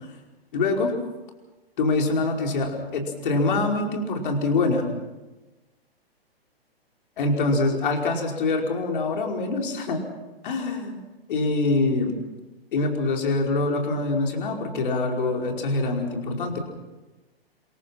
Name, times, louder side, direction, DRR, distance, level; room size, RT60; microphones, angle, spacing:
voice 1, 0.5-0.9 1.8-4.9 7.2-10.0 10.4-11.0 11.3-12.1 12.7-16.6, left 3 dB, 55° left, 2 dB, 5.2 m, -24 dB
27.0 x 23.0 x 6.0 m, 1.1 s
figure-of-eight pair, 115°, 31 cm